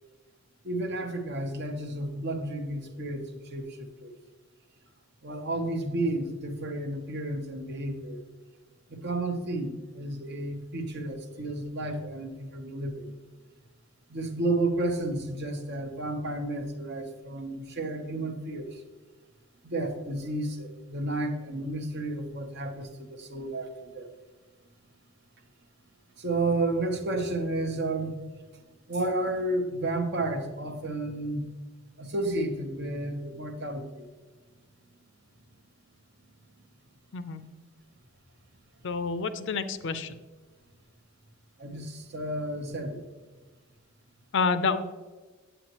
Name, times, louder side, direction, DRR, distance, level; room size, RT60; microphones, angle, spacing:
voice 1, 0.6-4.1 5.2-8.2 8.9-13.2 14.1-18.8 19.6-24.1 26.2-28.1 28.9-31.5 32.0-34.1 41.6-43.0, right 2 dB, 50° right, 5 dB, 0.9 m, -32 dB
voice 2, 38.8-40.2 44.3-44.8, left 4 dB, 55° left, 11 dB, 0.5 m, -28 dB
8.9 x 8.0 x 3.0 m, 1.3 s
head